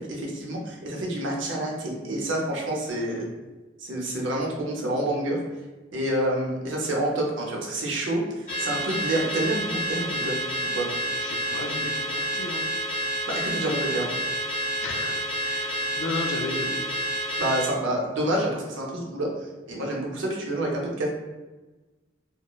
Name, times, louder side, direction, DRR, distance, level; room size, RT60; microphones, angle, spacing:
voice 1, 0.0-3.3 3.8-5.4 5.9-10.4 10.8-10.9 13.3-14.1 17.4-19.3 19.7-21.1, right 1 dB, 75° right, -1 dB, 0.6 m, -28 dB
Car / Alarm, 8.5-17.7, right 1 dB, 40° left, 1.4 m, -29 dB
voice 2, 11.0-12.7 14.8-16.8, left 2 dB, 75° left, 3 dB, 0.4 m, -34 dB
2.9 x 2.0 x 2.3 m, 1.2 s
head